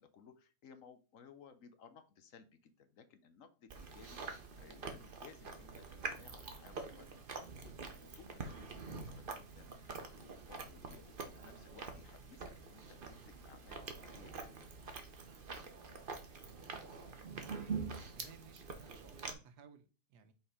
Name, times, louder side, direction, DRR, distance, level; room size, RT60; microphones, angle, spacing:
voice 1, 0.0-14.6, left 6 dB, 60° left, 1.1 m, -60 dB
Chewing mastication, 3.7-19.3, right 4 dB, 40° right, 0.9 m, -46 dB
voice 2, 17.3-20.3, right 7 dB, 85° right, 1.4 m, -58 dB
5.5 x 4.5 x 4.8 m
omnidirectional pair, 1.7 m